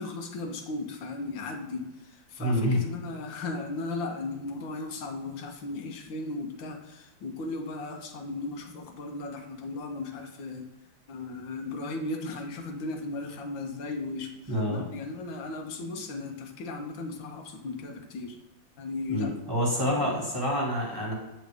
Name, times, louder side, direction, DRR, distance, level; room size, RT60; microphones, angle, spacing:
voice 1, 0.0-10.7 11.1-18.4 18.8-19.4 19.7-20.2, left 3 dB, 85° left, 4 dB, 1.6 m, -36 dB
voice 2, 2.4-2.8 14.5-14.9 19.1-21.1, equal, 10° right, -4 dB, 1.6 m, -27 dB
7.7 x 3.8 x 3.4 m, 1.0 s
omnidirectional pair, 2.0 m